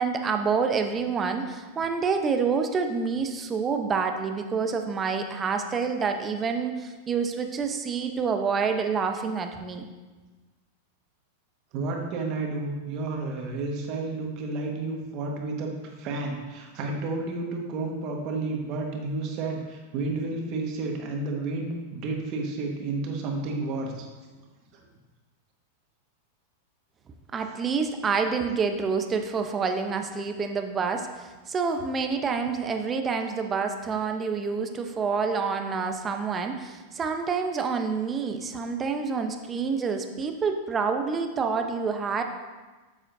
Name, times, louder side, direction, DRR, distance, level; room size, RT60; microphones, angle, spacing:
voice 1, 0.0-9.9 27.3-42.2, right 5 dB, 25° right, 5 dB, 0.8 m, -28 dB
voice 2, 11.7-24.1 24.7-24.8, right 3 dB, 45° right, 1 dB, 1.5 m, -31 dB
8.6 x 7.3 x 2.7 m, 1.3 s
hypercardioid pair, 100°, 0 cm